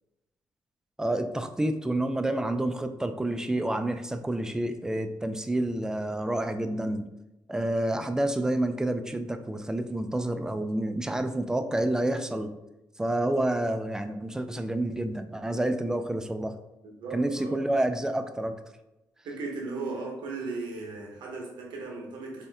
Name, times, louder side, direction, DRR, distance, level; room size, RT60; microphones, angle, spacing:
voice 1, 1.0-7.1 7.5-12.5 13.0-16.6 17.1-18.6, right 1 dB, 10° right, 8 dB, 0.3 m, -29 dB
voice 2, 16.8-17.6 19.2-22.5, right 3 dB, 85° right, -1 dB, 1.0 m, -36 dB
4.2 x 3.2 x 3.4 m, 0.97 s
cardioid pair, 130°, 8 cm